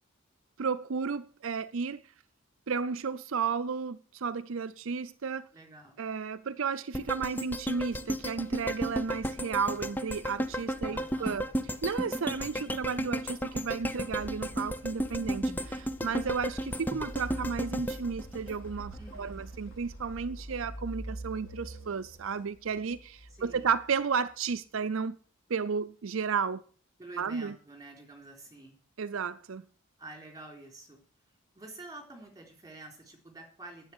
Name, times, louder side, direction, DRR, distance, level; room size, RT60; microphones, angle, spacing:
voice 1, 0.6-2.0 2.7-5.4 6.0-11.5 11.8-25.1 25.5-26.6 27.2-27.5 29.0-29.6, right 5 dB, 70° right, 0.5 m, -33 dB
voice 2, 5.5-6.0 10.9-11.5 19.0-19.4 23.3-23.7 27.0-28.7 30.0-31.0 31.5-33.9, right 2 dB, 15° right, 3.8 m, -48 dB
sound 1, 6.9-19.1 19.5-19.6, equal, 10° left, 0.7 m, -34 dB
sound 2, 7.6-18.3, equal, 90° left, 4.0 m, -58 dB
sound 3, 13.6-24.3, right 1 dB, 70° left, 5.2 m, -45 dB
10.0 x 8.2 x 9.8 m
head